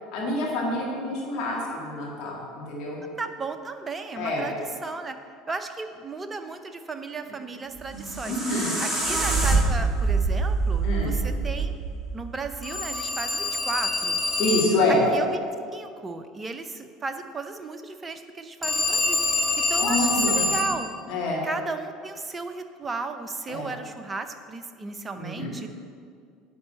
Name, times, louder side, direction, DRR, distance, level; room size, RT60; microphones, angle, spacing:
voice 1, 0.1-3.0 4.2-4.5 7.9-8.7 10.8-11.2 14.4-15.0 19.8-20.5 21.1-21.4 23.5-23.7 25.2-25.8, left 1 dB, 50° left, -4 dB, 2.0 m, -27 dB
voice 2, 3.2-4.5 4.8-5.2 5.5-8.3 8.8-11.7 12.1-14.2 15.1-15.4 15.7-19.2 19.7-20.9 21.4-25.7, right 4 dB, 20° right, 8 dB, 0.6 m, -35 dB
sound 1, 7.8-12.9, right 3 dB, 5° right, 2.1 m, -25 dB
Telephone, 12.6-14.9 18.6-20.8, left 3 dB, 15° left, 1.7 m, -25 dB
9.8 x 4.2 x 6.8 m, 2.2 s
figure-of-eight pair, 70°, 0 cm